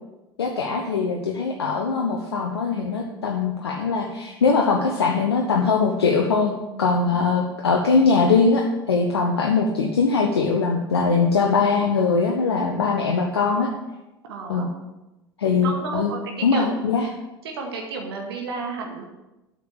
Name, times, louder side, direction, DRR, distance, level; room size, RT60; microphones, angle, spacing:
voice 1, 0.4-13.7 14.5-14.7 15.4-16.1 16.4-17.1, left 4 dB, 80° left, 1 dB, 1.0 m, -21 dB
voice 2, 14.3-14.7 15.6-16.7 17.4-19.0, right 4 dB, 70° right, 1 dB, 2.0 m, -32 dB
8.2 x 6.6 x 8.0 m, 1.0 s
figure-of-eight pair, 70°, 13 cm